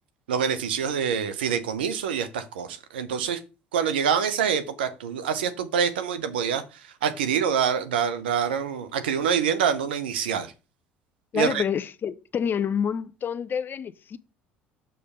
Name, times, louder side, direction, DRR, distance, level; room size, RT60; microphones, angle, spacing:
voice 1, 0.3-3.4 3.7-6.6 7.0-10.5 11.3-11.6, right 7 dB, 85° right, 0.7 m, -26 dB
voice 2, 11.3-14.2, left 7 dB, 40° left, 0.5 m, -28 dB
6.6 x 3.3 x 5.5 m
hypercardioid pair, 70°, 5 cm